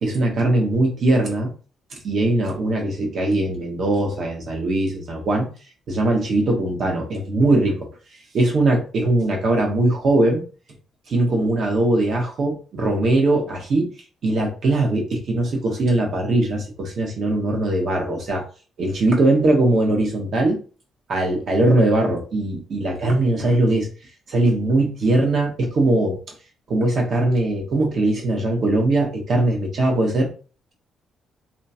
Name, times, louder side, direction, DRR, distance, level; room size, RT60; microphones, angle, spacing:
voice 1, 0.0-1.5 1.9-5.5 5.9-7.9 8.3-10.4 11.1-13.9 14.2-18.4 18.8-20.6 21.1-23.9 24.3-26.2 26.7-30.3, right 2 dB, 60° right, 1 dB, 1.1 m, -20 dB
2.8 x 2.3 x 2.7 m, 0.36 s
cardioid pair, 90°, 0 cm